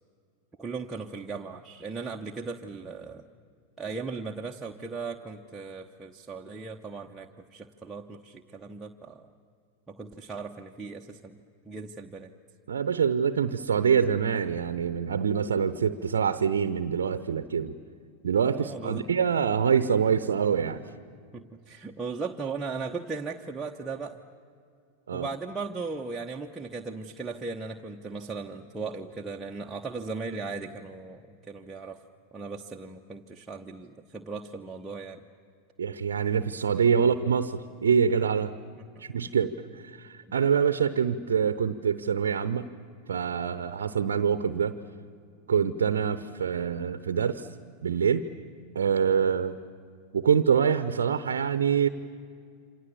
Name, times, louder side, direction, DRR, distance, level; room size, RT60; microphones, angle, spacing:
voice 1, 0.6-3.3 3.8-9.3 9.9-11.4 11.7-12.3 18.5-19.1 21.3-24.2 25.1-32.0 32.3-35.2 37.0-37.1, right 4 dB, 10° right, -1 dB, 1.0 m, -37 dB
voice 2, 12.7-17.8 18.2-20.8 25.1-25.3 35.8-38.5 39.0-42.7 43.1-44.8 45.5-47.5 47.8-48.3 48.7-49.6 50.1-51.9, right 7 dB, 65° right, 13 dB, 0.8 m, -25 dB
28.0 x 26.5 x 7.2 m, 2.3 s
figure-of-eight pair, 90°, 0 cm